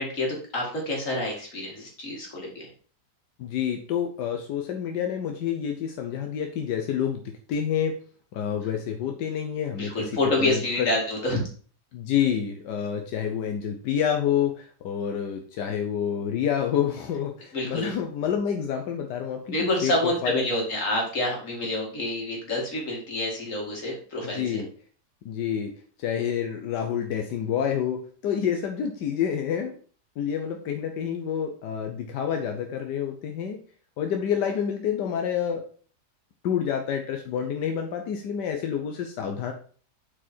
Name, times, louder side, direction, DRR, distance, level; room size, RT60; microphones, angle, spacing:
voice 1, 0.0-2.7 9.8-11.4 17.5-17.9 19.5-24.6, left 1 dB, 50° left, -1 dB, 2.6 m, -28 dB
voice 2, 3.4-7.9 8.3-10.1 10.4-10.9 11.9-20.5 24.2-24.7 25.2-25.7 26.0-29.7 30.2-33.6 34.0-35.7 36.4-39.5, left 8 dB, 85° left, 4 dB, 1.4 m, -28 dB
7.3 x 4.6 x 4.3 m, 0.43 s
omnidirectional pair, 1.8 m